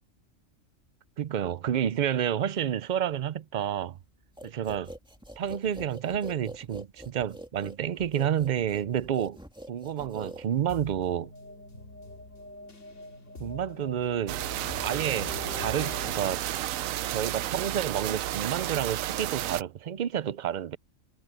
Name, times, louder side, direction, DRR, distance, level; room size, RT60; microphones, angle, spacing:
voice 1, 1.2-4.0 4.4-4.9 5.4-9.4 9.7-11.3 13.4-14.4 14.8-16.5 17.1-20.8, right 9 dB, 55° right, 0.5 m, -30 dB
sound 1, 4.4-10.9, right 1 dB, 5° right, 2.0 m, -44 dB
sound 2, 10.7-18.6, left 3 dB, 65° left, 2.5 m, -44 dB
sound 3, 14.3-19.6, right 13 dB, 85° right, 1.0 m, -32 dB
omnidirectional pair, 1.4 m